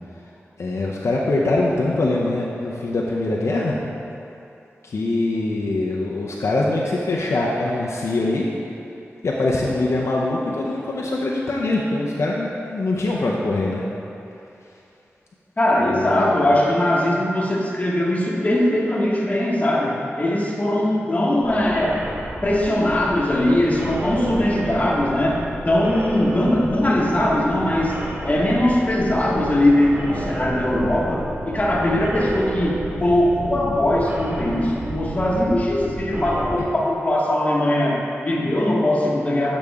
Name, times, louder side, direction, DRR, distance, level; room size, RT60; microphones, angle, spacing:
voice 1, 0.6-3.8 4.8-8.5 9.2-13.8 15.8-16.5, left 2 dB, 70° left, -4 dB, 0.7 m, -23 dB
voice 2, 15.6-22.0 22.4-28.0 28.2-39.6, left 1 dB, 30° left, -4 dB, 1.3 m, -20 dB
sound 1, 21.4-36.6, right 1 dB, 30° right, 0.9 m, -31 dB
8.5 x 5.1 x 3.5 m, 2.7 s
wide cardioid pair, 75°, 5 cm